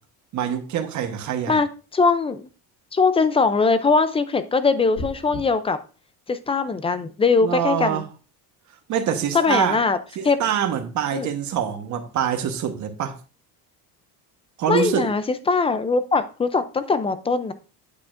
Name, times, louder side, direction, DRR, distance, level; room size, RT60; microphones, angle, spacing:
voice 1, 0.3-1.6 7.4-8.1 8.9-9.8 10.2-13.2 14.6-15.1, right 9 dB, 45° right, 1.2 m, -25 dB
voice 2, 1.5-2.5 2.9-5.8 6.3-8.0 9.3-10.0 10.2-10.4 11.1-11.3 14.7-17.5, left 4 dB, 15° left, 0.3 m, -21 dB
sound 1, 4.9-5.4, left 1 dB, 60° left, 3.9 m, -33 dB
8.6 x 8.4 x 2.5 m
cardioid pair, 160°, 39 cm